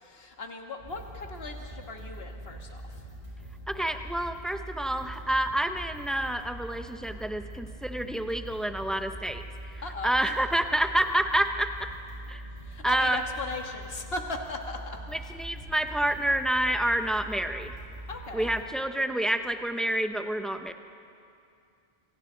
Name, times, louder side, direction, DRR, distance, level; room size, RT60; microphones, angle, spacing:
voice 1, 0.0-2.8 9.8-10.1 12.7-15.0 18.1-18.5, left 3 dB, 65° left, 3 dB, 1.9 m, -37 dB
sound 1, 0.8-18.6, equal, 90° right, 6.3 m, -43 dB
voice 2, 3.7-9.4 10.0-11.7 12.3-12.4 12.8-13.2 15.1-17.7 18.3-20.7, right 1 dB, ahead, 7 dB, 0.7 m, -28 dB
27.0 x 25.0 x 4.0 m, 2.5 s
omnidirectional pair, 1.1 m